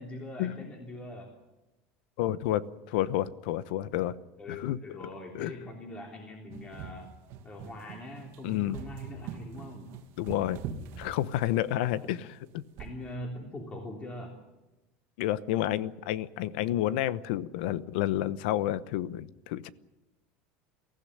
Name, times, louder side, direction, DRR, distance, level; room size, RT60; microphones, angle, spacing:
voice 1, 0.0-1.3 4.4-7.1 7.4-9.9 11.7-12.1 12.8-14.4, left 1 dB, 20° left, 1 dB, 3.3 m, -42 dB
voice 2, 2.2-4.1 4.5-4.8 5.3-5.5 8.4-8.8 10.2-10.6 11.0-12.6 15.2-19.7, left 13 dB, 75° left, 17 dB, 1.0 m, -30 dB
sound 1, 6.5-11.8 12.8-13.1, right 7 dB, 55° right, 2.3 m, -43 dB
23.5 x 15.5 x 10.0 m, 1.1 s
supercardioid pair, 140°, 5 cm